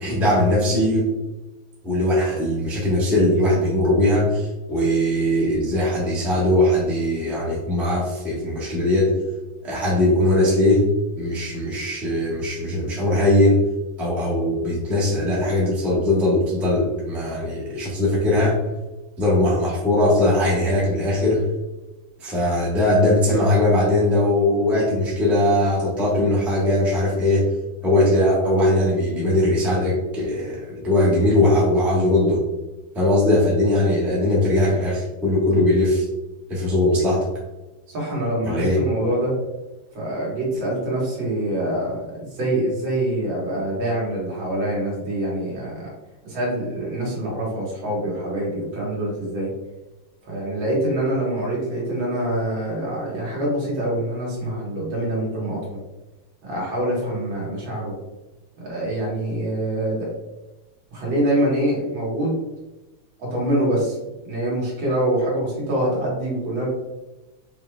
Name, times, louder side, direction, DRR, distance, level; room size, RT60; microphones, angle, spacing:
voice 1, 0.0-1.1 1.8-9.1 9.6-10.9 11.1-13.6 14.0-18.6 19.2-21.4 22.2-27.5 27.8-32.4 32.9-36.0 36.5-37.3 38.4-38.8, left 1 dB, ahead, -6 dB, 0.7 m, -20 dB
voice 2, 37.9-39.3 39.9-45.9 46.2-49.5 50.3-55.8 56.4-57.9 58.6-60.1 60.9-62.4 63.2-64.0 64.2-66.7, right 1 dB, 70° right, -4 dB, 2.2 m, -25 dB
5.5 x 3.0 x 2.3 m, 1.1 s
omnidirectional pair, 2.2 m